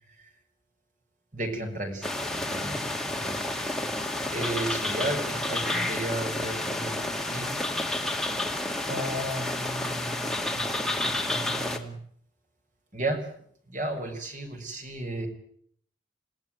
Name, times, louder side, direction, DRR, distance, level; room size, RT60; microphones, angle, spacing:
voice 1, 1.3-2.1 2.3-3.8 4.2-8.4 8.9-12.0 12.9-13.3 13.7-15.3, right 1 dB, 40° right, 4 dB, 6.5 m, -34 dB
sound 1, 2.0-11.8, left 1 dB, ahead, 2.2 m, -30 dB
28.5 x 17.5 x 9.4 m, 0.66 s
head